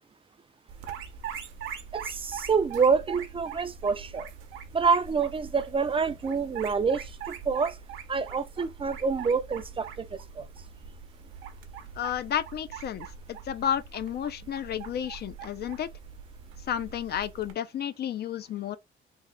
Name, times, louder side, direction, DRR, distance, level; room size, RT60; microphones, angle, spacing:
sound 1, 0.7-17.5, right 7 dB, 90° right, 0.7 m, -42 dB
voice 1, 1.9-4.3 4.7-7.8 8.1-10.4, right 5 dB, 25° right, 0.4 m, -27 dB
voice 2, 12.0-15.9 16.7-18.8, left 9 dB, 55° left, 0.4 m, -32 dB
3.5 x 2.1 x 3.5 m
cardioid pair, 90°, 20 cm